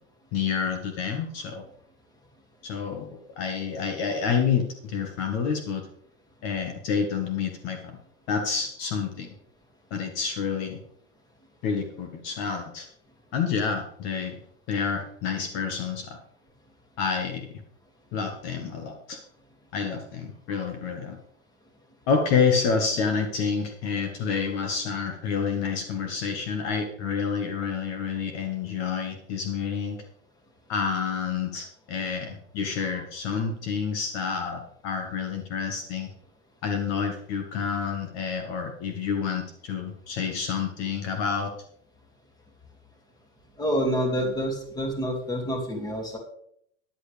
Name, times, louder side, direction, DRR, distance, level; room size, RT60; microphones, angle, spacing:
voice 1, 0.3-1.6 2.6-5.9 6.4-7.9 8.3-9.3 9.9-10.8 11.6-12.9 13.3-14.4 14.7-16.2 17.0-17.5 18.1-19.2 19.7-21.2 22.1-30.0 30.7-36.1 36.6-41.5, left 6 dB, 45° left, 5 dB, 1.6 m, -28 dB
voice 2, 43.6-46.2, equal, 10° left, 2 dB, 2.5 m, -27 dB
13.5 x 10.5 x 3.4 m, 0.68 s
supercardioid pair, 145°, 35 cm